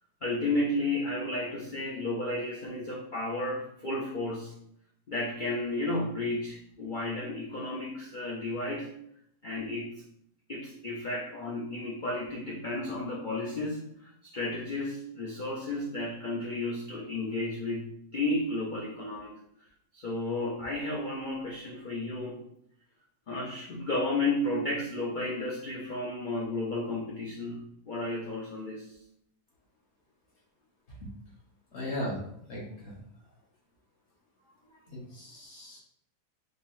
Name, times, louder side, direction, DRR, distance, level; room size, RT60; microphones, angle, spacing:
voice 1, 0.2-4.5 5.1-8.9 9.4-9.9 10.5-19.3 19.9-22.4 23.3-29.0 34.7-34.8, left 2 dB, 90° left, -3 dB, 0.4 m, -33 dB
voice 2, 31.7-32.2 32.5-33.0 34.9-35.8, left 1 dB, 45° left, -4 dB, 1.3 m, -37 dB
4.5 x 2.2 x 3.0 m, 0.71 s
omnidirectional pair, 1.7 m